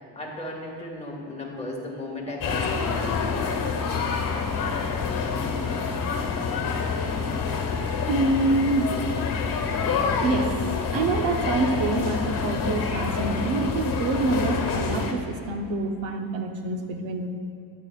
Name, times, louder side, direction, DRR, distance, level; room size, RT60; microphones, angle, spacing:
voice 1, 0.1-3.2, left 1 dB, 15° left, -2 dB, 1.8 m, -35 dB
sound 1, 2.4-15.1, left 5 dB, 45° left, 1.3 m, -27 dB
voice 2, 8.1-9.0 10.2-10.5 10.9-17.3, right 3 dB, 75° right, 5 dB, 0.9 m, -26 dB
15.5 x 10.0 x 2.4 m, 2.5 s
cardioid pair, 130°, 45 cm